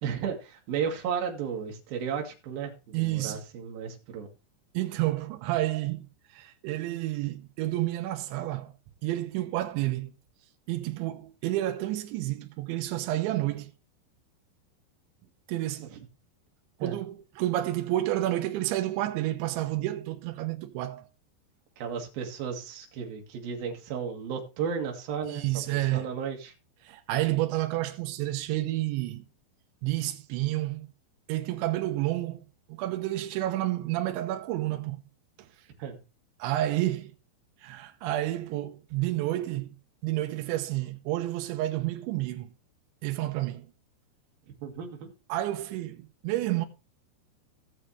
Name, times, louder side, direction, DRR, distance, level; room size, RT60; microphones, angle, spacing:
voice 1, 0.0-4.3 15.9-16.0 16.8-17.0 21.8-25.4 25.7-26.5 35.8-36.0 44.6-45.1, right 7 dB, 60° right, 3.4 m, -34 dB
voice 2, 2.9-3.4 4.7-8.7 9.0-10.1 10.7-13.7 15.5-15.9 16.8-21.1 25.3-26.1 26.8-29.2 29.8-30.9 31.3-35.1 35.4-35.5 36.4-37.1 37.6-39.8 40.0-42.5 43.0-43.7 45.3-46.7, right 15 dB, 80° right, 3.2 m, -30 dB
17.0 x 6.7 x 3.2 m
omnidirectional pair, 5.3 m